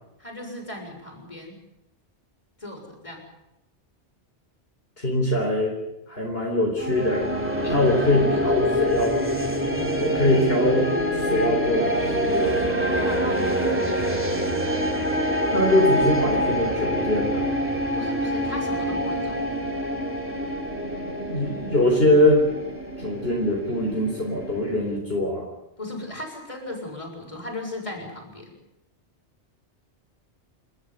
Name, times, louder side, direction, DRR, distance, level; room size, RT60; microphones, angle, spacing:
voice 1, 0.2-1.6 2.6-3.2 7.6-8.9 12.9-14.4 17.9-19.4 25.8-28.5, left 1 dB, 25° left, 0 dB, 7.0 m, -36 dB
voice 2, 5.0-5.7 6.1-7.2 7.7-9.1 10.0-10.9 11.1-12.7 15.4-17.4 21.1-22.4 23.0-25.4, left 1 dB, 55° left, -1 dB, 4.4 m, -22 dB
sound 1, 6.8-25.0, equal, 10° right, 2.9 m, -26 dB
28.5 x 13.5 x 9.7 m, 0.91 s
omnidirectional pair, 1.2 m